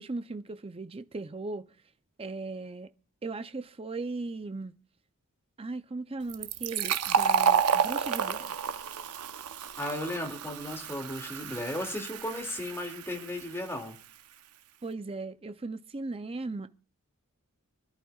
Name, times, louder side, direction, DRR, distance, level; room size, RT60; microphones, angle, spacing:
voice 1, 0.0-1.7 2.2-2.9 3.2-4.8 5.6-8.5 14.8-16.7, right 3 dB, 25° right, 0.5 m, -37 dB
Fill (with liquid), 6.3-13.7, right 7 dB, 85° right, 0.8 m, -30 dB
voice 2, 9.8-14.0, left 1 dB, 10° left, 2.3 m, -35 dB
25.5 x 11.5 x 2.4 m
head